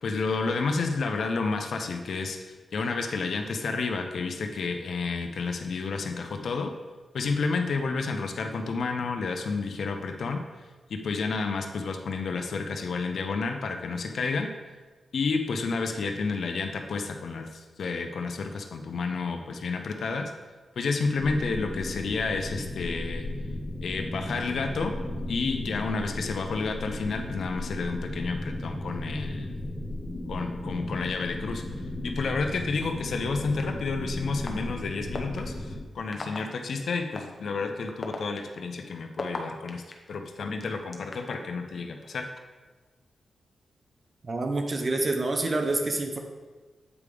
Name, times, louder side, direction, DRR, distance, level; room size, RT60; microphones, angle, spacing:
voice 1, 0.0-6.7 7.1-10.4 10.9-14.5 15.1-20.3 20.8-23.3 23.8-24.9 25.3-29.5 30.3-31.6 32.0-39.8 40.1-42.3, left 4 dB, 75° left, 5 dB, 0.7 m, -30 dB
sound 1, 21.2-35.8, left 1 dB, 25° left, 1.7 m, -35 dB
sound 2, 33.6-33.7 34.5-34.6 35.1-35.4 36.1-36.4 37.1-37.2 37.9-39.9 40.6-41.4, left 3 dB, 40° left, 0.8 m, -35 dB
voice 2, 44.2-46.2, right 2 dB, 40° right, 4 dB, 0.9 m, -27 dB
8.3 x 4.8 x 3.5 m, 1.4 s
cardioid pair, 80°, 0 cm